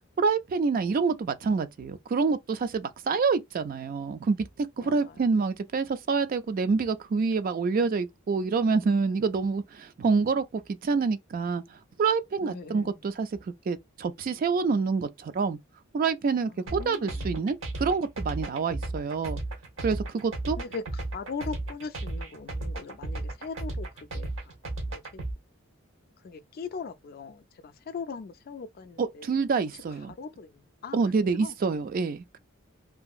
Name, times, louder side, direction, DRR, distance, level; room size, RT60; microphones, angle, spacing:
voice 1, 0.2-11.6 12.0-13.3 13.7-15.6 15.9-19.4 19.8-20.6 29.0-30.2 30.9-32.4, right 4 dB, 45° right, 0.3 m, -27 dB
voice 2, 4.8-5.3 12.4-13.0 16.5-17.5 20.6-24.3 24.9-25.2 26.2-29.4 30.1-31.6, left 5 dB, 50° left, 0.3 m, -40 dB
sound 1, 16.7-25.3, right 2 dB, 70° right, 0.9 m, -34 dB
2.8 x 2.5 x 2.3 m
head